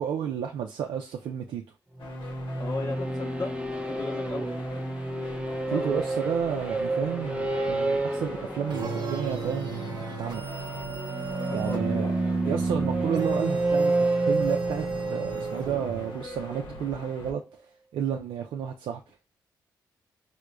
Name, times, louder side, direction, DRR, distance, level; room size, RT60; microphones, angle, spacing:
voice 1, 0.0-1.6 5.7-10.5 11.5-12.1 12.4-17.4 17.9-19.1, right 8 dB, 80° right, 0.4 m, -31 dB
sound 1, 1.9-16.6, right 2 dB, 15° right, 0.6 m, -30 dB
sound 2, 2.0-17.3, left 3 dB, 70° left, 0.8 m, -43 dB
voice 2, 2.6-4.5 5.7-5.9 11.3-12.1, left 3 dB, 45° left, 0.7 m, -36 dB
sound 3, 8.7-16.2, right 4 dB, 55° right, 0.8 m, -35 dB
4.7 x 2.1 x 2.2 m
supercardioid pair, 55°, 8 cm